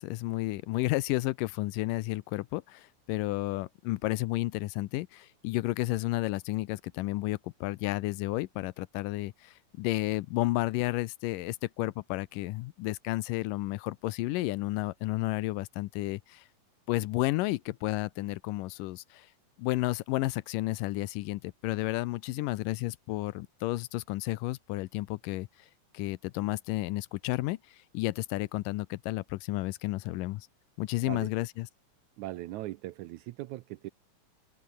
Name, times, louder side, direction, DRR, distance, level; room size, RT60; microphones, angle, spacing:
voice 1, 0.0-16.5 16.9-19.3 19.6-25.5 25.9-30.5 30.8-31.7, left 19 dB, 85° left, 2.3 m, -32 dB
voice 2, 32.2-33.9, right 17 dB, 80° right, 1.8 m, -39 dB
open air
omnidirectional pair, 3.7 m